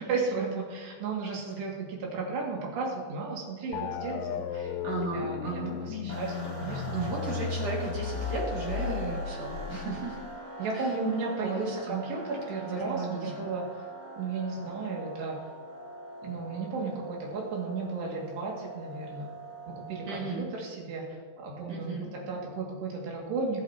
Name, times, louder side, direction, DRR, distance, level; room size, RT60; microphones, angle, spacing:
voice 1, 0.0-4.8 5.1-7.5 9.9-10.0 10.6-13.7 14.2-15.4 16.2-19.3 19.7-23.6, right 4 dB, 80° right, -2 dB, 4.3 m, -34 dB
sound 1, 3.7-10.4, left 7 dB, 85° left, 2.8 m, -35 dB
voice 2, 4.8-5.8 6.7-10.2 10.7-10.9 11.4-12.0 12.9-13.5 20.1-20.5 21.7-22.1, right 2 dB, 45° right, -3 dB, 2.9 m, -35 dB
sound 2, 6.1-20.6, right 1 dB, 35° left, 0.6 m, -43 dB
19.5 x 8.6 x 2.9 m, 1.6 s
omnidirectional pair, 4.9 m